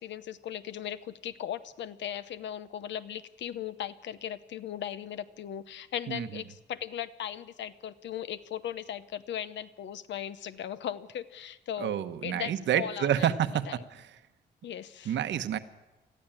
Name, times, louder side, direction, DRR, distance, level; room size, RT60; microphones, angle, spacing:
voice 1, 0.0-12.0 12.2-13.3 13.7-13.8 14.6-15.2, left 10 dB, 85° left, 14 dB, 0.9 m, -38 dB
voice 2, 11.8-13.6 13.9-14.1 15.0-15.6, right 10 dB, 80° right, 10 dB, 1.1 m, -28 dB
21.0 x 14.5 x 8.9 m, 1.1 s
wide cardioid pair, 170°, 18 cm